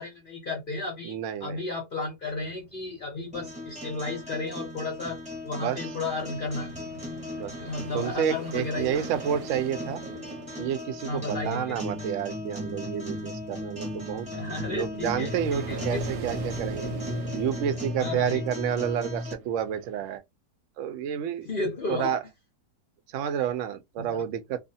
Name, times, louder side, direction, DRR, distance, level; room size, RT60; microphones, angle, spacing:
voice 1, 0.0-5.2 5.4-6.7 7.6-9.1 11.1-11.8 14.3-16.1 18.0-18.4 21.4-22.1 24.0-24.2, left 2 dB, 50° left, 0.6 m, -33 dB
voice 2, 1.0-1.6 5.5-5.8 7.4-7.5 7.9-10.0 10.6-14.3 14.7-16.9 17.3-20.2 20.8-21.5 21.9-22.2 23.1-24.6, right 9 dB, 70° right, 0.7 m, -30 dB
sound 1, 2.3-20.2, right 5 dB, 90° right, 1.2 m, -43 dB
sound 2, 3.3-19.3, left 2 dB, 5° right, 0.6 m, -36 dB
2.4 x 2.4 x 2.7 m
omnidirectional pair, 1.7 m